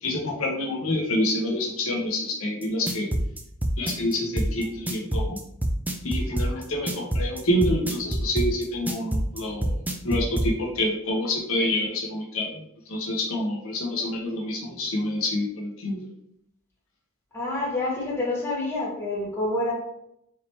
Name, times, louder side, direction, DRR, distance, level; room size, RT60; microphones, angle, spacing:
voice 1, 0.0-3.1 3.8-5.4 6.0-9.8 10.0-16.1, left 1 dB, 70° left, -1 dB, 1.0 m, -27 dB
sound 1, 2.6-10.5, right 1 dB, 10° right, 0.4 m, -26 dB
voice 2, 17.3-19.7, left 2 dB, 10° left, -6 dB, 1.3 m, -27 dB
4.8 x 3.2 x 3.0 m, 0.73 s
head